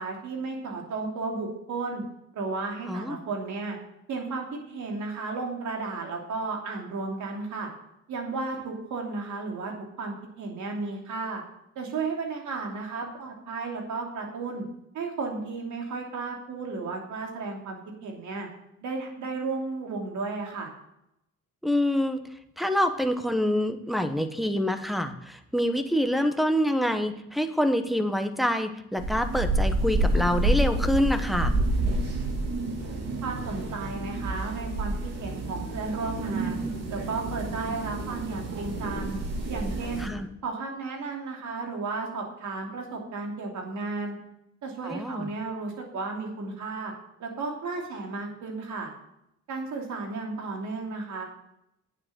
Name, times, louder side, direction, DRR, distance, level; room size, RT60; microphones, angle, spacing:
voice 1, 0.0-2.0 2.3-3.8 4.1-7.7 8.1-9.7 10.0-11.4 11.7-14.6 14.9-18.5 18.8-20.7 32.9-36.6 36.9-39.2 39.5-40.1 40.4-44.2 44.6-46.9 47.2-48.9 49.5-51.2, right 3 dB, 70° right, 1 dB, 3.0 m, -33 dB
voice 2, 2.9-3.2 21.6-22.2 22.6-31.6 40.0-40.3 44.8-45.3, equal, ahead, 6 dB, 1.1 m, -26 dB
sound 1, 29.0-40.1, right 2 dB, 55° right, 2.8 m, -29 dB
9.5 x 7.6 x 7.5 m, 0.83 s
cardioid pair, 90°, 30 cm